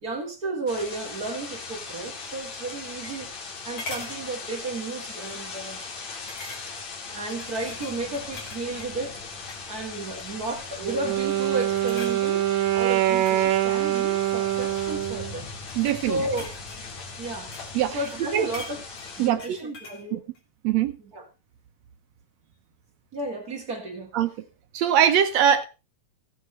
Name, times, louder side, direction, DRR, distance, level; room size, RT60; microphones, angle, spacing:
voice 1, 0.0-3.3 3.6-5.8 6.7-6.8 7.1-9.2 9.7-12.4 12.7-15.5 16.0-16.7 17.2-17.5 17.9-18.8 19.2-20.2 21.0-21.2 23.1-24.1, right 2 dB, 30° right, 2.7 m, -33 dB
sound 1, 0.7-19.3, left 4 dB, 70° left, 3.4 m, -39 dB
sound 2, 2.6-3.5 3.8-4.2 4.7-4.9 5.2-5.3 6.3-6.9 7.3-8.9 9.4-9.7 10.0-10.6 11.1-11.3 11.6-12.2 12.9-14.5 15.3-17.8 18.0-20.1 20.4-20.5, left 3 dB, 55° left, 3.7 m, -42 dB
Wind instrument woodwind instrument, 10.8-15.4, right 14 dB, 90° right, 2.3 m, -24 dB
voice 2, 15.8-16.2 17.7-18.0 18.3-18.5 19.2-19.6 20.1-20.2 20.6-20.9 24.1-24.3 24.7-25.6, right 9 dB, 75° right, 1.9 m, -22 dB
15.5 x 8.1 x 4.1 m
omnidirectional pair, 3.3 m